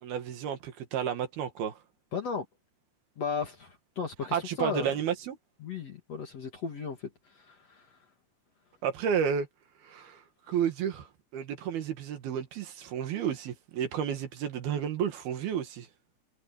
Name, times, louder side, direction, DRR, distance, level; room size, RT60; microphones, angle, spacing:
voice 1, 0.0-1.8 4.3-5.4 8.8-9.5 9.8-10.2 10.5-11.1 11.3-15.9, right 8 dB, 70° right, 3.5 m, -31 dB
voice 2, 2.1-2.5 3.2-4.9 5.6-7.0 7.3-7.9, left 5 dB, 50° left, 2.4 m, -35 dB
omnidirectional pair, 4.9 m